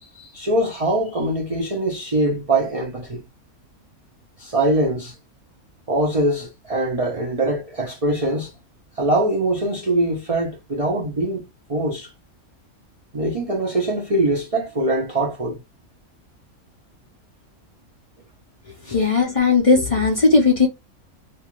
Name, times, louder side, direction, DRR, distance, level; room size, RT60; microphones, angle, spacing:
voice 1, 0.2-3.2 4.4-5.2 5.9-8.5 9.0-11.4 11.7-12.1 13.1-15.6 18.9-19.0, right 1 dB, 35° right, 0.5 m, -22 dB
voice 2, 18.9-20.7, left 4 dB, 40° left, 0.5 m, -17 dB
2.6 x 2.4 x 2.9 m
omnidirectional pair, 1.5 m